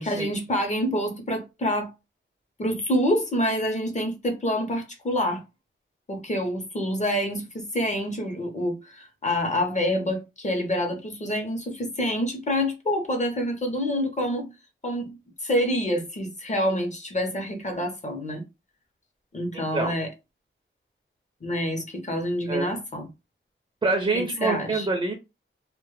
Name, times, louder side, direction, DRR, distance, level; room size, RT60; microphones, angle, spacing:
voice 1, 0.0-1.9 2.6-5.4 6.1-14.5 14.8-18.4 19.3-20.1 21.4-23.1 24.1-24.9, equal, 35° left, 0.6 m, -27 dB
voice 2, 19.5-20.0 22.5-22.7 23.8-25.1, right 3 dB, 25° right, 0.5 m, -26 dB
2.1 x 2.0 x 3.1 m
wide cardioid pair, 145°, 21 cm